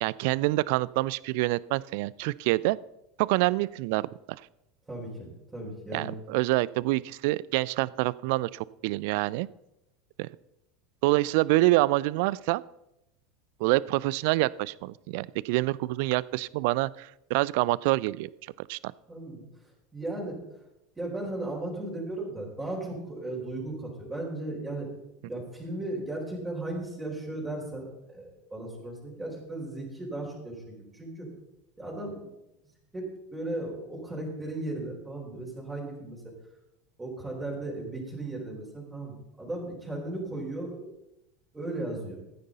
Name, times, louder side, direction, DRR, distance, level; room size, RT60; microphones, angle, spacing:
voice 1, 0.0-2.8 3.2-4.1 5.9-9.5 10.2-10.3 11.0-12.6 13.6-18.3 18.6-18.9, right 20 dB, 60° right, 22 dB, 0.3 m, -26 dB
voice 2, 4.9-6.1 19.1-19.4 19.9-20.4 21.0-24.9 25.2-31.3 31.8-32.2 32.9-36.3 37.0-40.9 41.5-42.2, right 2 dB, 15° right, -3 dB, 4.6 m, -36 dB
15.0 x 9.8 x 4.0 m, 0.89 s
figure-of-eight pair, 75°, 0 cm